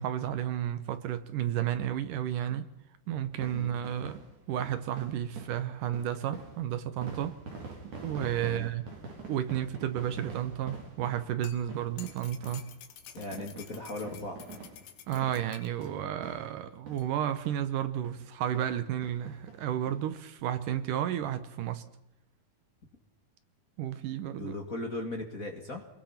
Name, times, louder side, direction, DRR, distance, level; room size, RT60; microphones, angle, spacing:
voice 1, 0.0-2.7 3.1-7.4 7.8-8.8 9.3-12.7 15.1-21.8 23.8-24.5, right 11 dB, 70° right, 2.2 m, -32 dB
sound 1, 3.3-17.2 17.5-17.6 18.0-18.2 18.5-18.7 19.0-20.0 20.4-20.5 20.7-20.8, right 4 dB, 50° right, 5.6 m, -46 dB
sound 2, 11.1-15.9 17.0-17.1, left 10 dB, 80° left, 3.6 m, -50 dB
voice 2, 13.1-14.5 24.4-25.9, left 2 dB, 30° left, 1.6 m, -38 dB
27.0 x 21.0 x 5.9 m
omnidirectional pair, 4.7 m